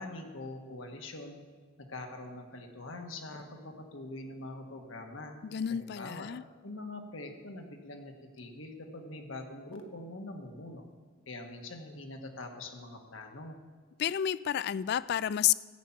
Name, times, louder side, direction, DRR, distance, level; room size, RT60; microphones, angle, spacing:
voice 1, 0.0-1.4 1.8-5.3 5.7-6.3 6.6-10.9 11.3-13.6, left 2 dB, 85° left, 4 dB, 1.5 m, -44 dB
voice 2, 5.4-6.4 14.0-15.5, left 10 dB, 55° left, 19 dB, 0.3 m, -30 dB
14.0 x 5.8 x 8.8 m, 1.4 s
head